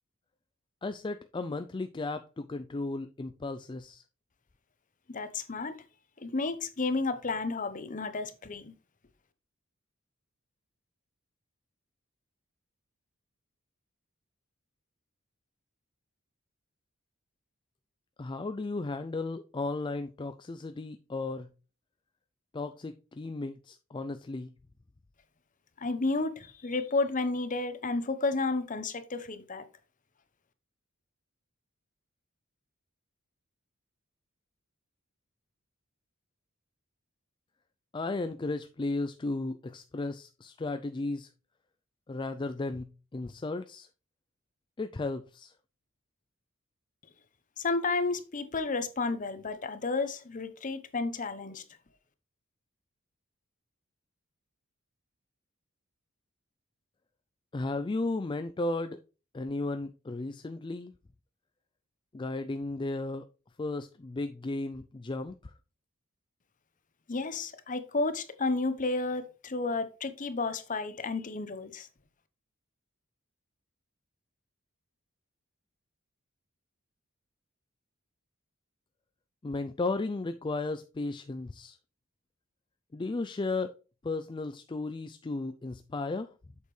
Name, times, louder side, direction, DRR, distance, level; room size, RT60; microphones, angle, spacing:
voice 1, 0.8-4.0 18.2-21.5 22.5-24.5 37.9-41.3 42.1-43.9 44.8-45.5 57.5-59.0 59.3-60.9 62.1-63.2 63.6-65.3 79.4-81.8 82.9-83.7 84.0-86.3, left 2 dB, 25° left, 0.4 m, -34 dB
voice 2, 5.1-5.8 6.2-8.7 25.8-29.7 47.6-51.6 67.1-71.9, left 3 dB, 40° left, 0.9 m, -32 dB
8.1 x 6.5 x 3.2 m
head